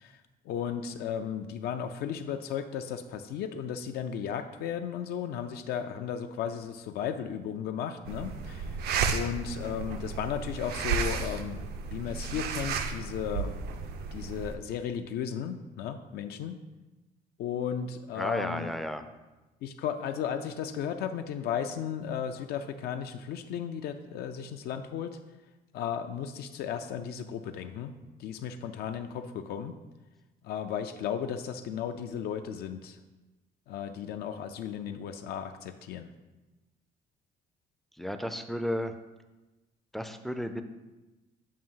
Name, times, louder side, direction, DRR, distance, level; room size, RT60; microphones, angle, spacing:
voice 1, 0.0-8.8 9.1-11.6 11.9-13.6 14.1-16.6 17.4-18.8 19.6-25.2 25.7-27.9 28.2-29.8 30.4-33.0 33.7-36.1, left 8 dB, 70° left, 7 dB, 0.4 m, -35 dB
sound 1, 8.0-14.6, right 5 dB, 70° right, 0.5 m, -33 dB
voice 2, 18.2-19.0 38.0-38.9 39.9-40.6, equal, ahead, 8 dB, 0.3 m, -33 dB
7.4 x 2.6 x 5.5 m, 1.1 s
cardioid pair, 110°, 17 cm